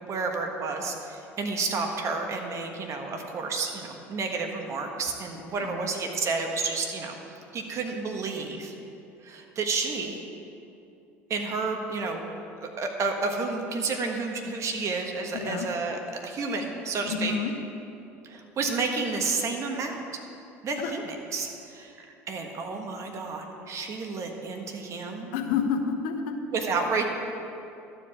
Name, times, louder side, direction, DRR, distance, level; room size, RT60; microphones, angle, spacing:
voice 1, 0.0-7.2 7.5-8.7 9.2-10.2 11.3-12.2 12.8-17.3 18.2-20.0 20.6-25.3 26.5-27.0, right 4 dB, 45° right, 3 dB, 1.5 m, -31 dB
voice 2, 15.3-15.7 17.0-17.5 20.8-20.9 25.3-26.3, left 6 dB, 75° left, 5 dB, 1.0 m, -29 dB
12.5 x 4.9 x 7.7 m, 2.7 s
hypercardioid pair, 75°, 7 cm